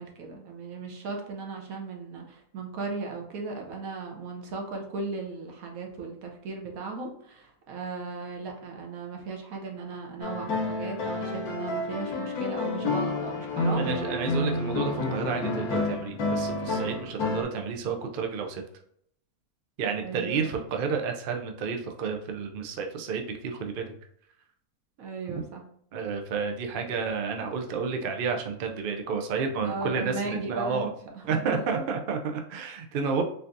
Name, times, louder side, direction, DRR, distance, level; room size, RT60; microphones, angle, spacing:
voice 1, 0.0-13.9 20.0-20.5 25.0-25.6 29.6-30.9 31.1-31.8, right 4 dB, 75° right, 1 dB, 1.2 m, -36 dB
sound 1, 10.2-17.4, left 2 dB, 75° left, 1.2 m, -29 dB
voice 2, 13.8-18.6 19.8-23.9 25.9-30.9 31.3-33.2, right 5 dB, 90° right, 4 dB, 0.4 m, -30 dB
4.3 x 2.7 x 2.4 m, 0.68 s
omnidirectional pair, 1.6 m